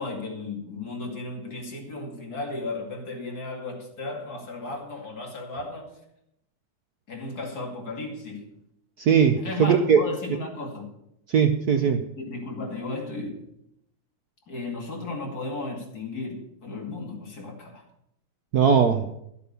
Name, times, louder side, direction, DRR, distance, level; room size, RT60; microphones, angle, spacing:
voice 1, 0.0-5.9 7.1-8.5 9.4-11.0 11.8-13.4 14.5-17.8, left 2 dB, 45° left, 2.9 m, -35 dB
voice 2, 9.0-10.0 11.3-12.1 18.5-19.1, right 7 dB, 65° right, 1.0 m, -20 dB
12.5 x 8.1 x 6.9 m
omnidirectional pair, 2.3 m